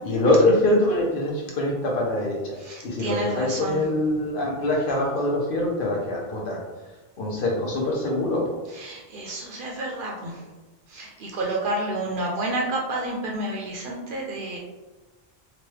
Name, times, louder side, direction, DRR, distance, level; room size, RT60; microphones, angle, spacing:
voice 1, 0.0-2.5 2.8-6.6 7.2-8.4, left 1 dB, 60° left, -2 dB, 0.8 m, -23 dB
voice 2, 2.6-3.8 8.7-10.4 10.9-14.6, right 1 dB, 60° right, -1 dB, 0.6 m, -30 dB
3.0 x 2.2 x 3.1 m, 1.2 s
omnidirectional pair, 1.1 m